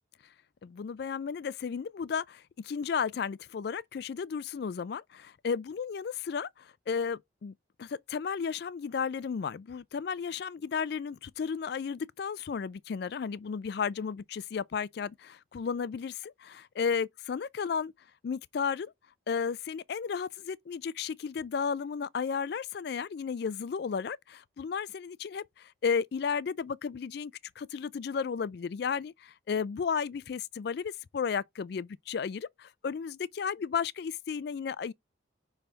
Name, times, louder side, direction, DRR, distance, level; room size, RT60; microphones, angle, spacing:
voice 1, 0.6-7.5 7.8-17.9 18.2-18.9 19.3-34.9, left 6 dB, 55° left, 0.3 m, -33 dB
5.6 x 3.4 x 5.1 m
head